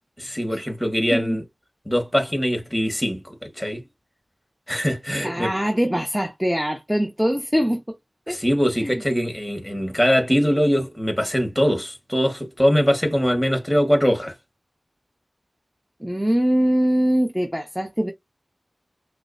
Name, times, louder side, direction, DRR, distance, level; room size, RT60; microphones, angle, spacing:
voice 1, 0.2-1.4 1.8-3.8 4.7-5.5 8.3-14.3, equal, 10° left, 1.5 m, -22 dB
voice 2, 5.2-7.9 8.3-8.4 8.8-9.0 16.0-18.1, equal, 5° right, 0.9 m, -22 dB
6.0 x 2.1 x 2.6 m
wide cardioid pair, 50°, 0 cm